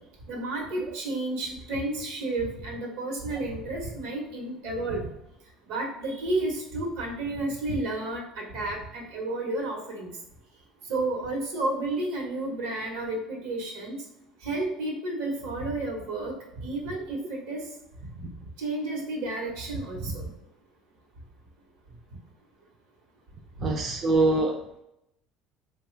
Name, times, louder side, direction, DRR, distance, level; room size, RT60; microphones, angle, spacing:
voice 1, 0.3-5.1 5.7-10.1 10.9-14.0 14.4-16.3 16.6-17.6 18.1-18.3 18.6-20.3 23.6-23.7, right 2 dB, 80° right, 0 dB, 1.0 m, -31 dB
voice 2, 23.6-24.8, right 2 dB, 35° right, 2 dB, 0.3 m, -24 dB
3.1 x 2.3 x 3.1 m, 0.84 s
cardioid pair, 135°, 0 cm